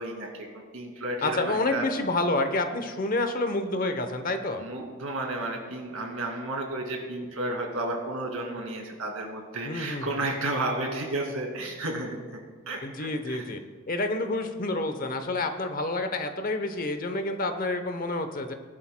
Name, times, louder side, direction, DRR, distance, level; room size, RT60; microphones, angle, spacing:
voice 1, 0.0-1.8 4.6-12.2 12.7-13.4, right 2 dB, 70° right, 1 dB, 2.3 m, -32 dB
voice 2, 1.2-4.6 9.6-10.2 12.8-13.6 13.9-18.5, left 2 dB, 40° left, 7 dB, 0.8 m, -28 dB
18.5 x 11.5 x 2.2 m, 1.5 s
head